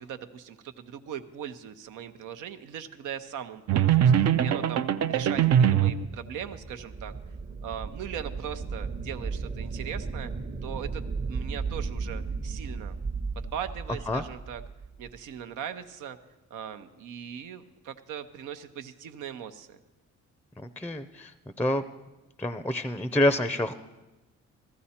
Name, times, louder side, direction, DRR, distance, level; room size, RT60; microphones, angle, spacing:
voice 1, 0.0-7.1 7.6-10.3 10.6-12.9 13.4-14.6 15.0-16.2 16.5-19.8, right 9 dB, 85° right, 8 dB, 0.8 m, -39 dB
sound 1, 3.7-6.1, right 9 dB, 60° right, 0.5 m, -22 dB
sound 2, 5.4-15.2, right 4 dB, 35° right, 0.9 m, -36 dB
voice 2, 20.8-21.3 21.6-21.8 22.4-23.7, left 1 dB, 5° left, 11 dB, 0.5 m, -27 dB
14.5 x 14.0 x 4.3 m, 1.1 s
cardioid pair, 90°, 30 cm